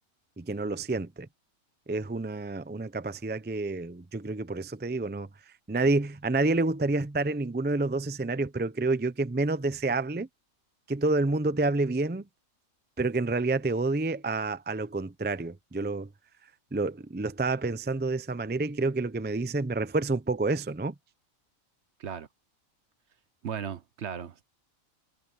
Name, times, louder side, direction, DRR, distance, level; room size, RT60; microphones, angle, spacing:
voice 1, 0.4-1.3 1.9-5.3 5.7-10.3 10.9-12.2 13.0-16.1 16.7-20.9, right 3 dB, 15° right, 0.4 m, -28 dB
voice 2, 23.4-24.4, right 8 dB, 60° right, 1.1 m, -36 dB
omnidirectional pair, 1.4 m